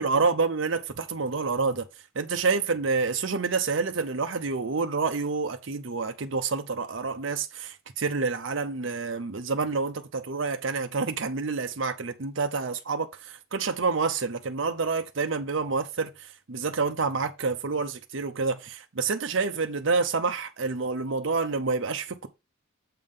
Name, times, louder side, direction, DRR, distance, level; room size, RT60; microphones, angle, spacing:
voice 1, 0.0-1.9 2.2-16.1 16.5-22.3, right 4 dB, 60° right, 0.7 m, -28 dB
7.6 x 3.5 x 5.5 m
head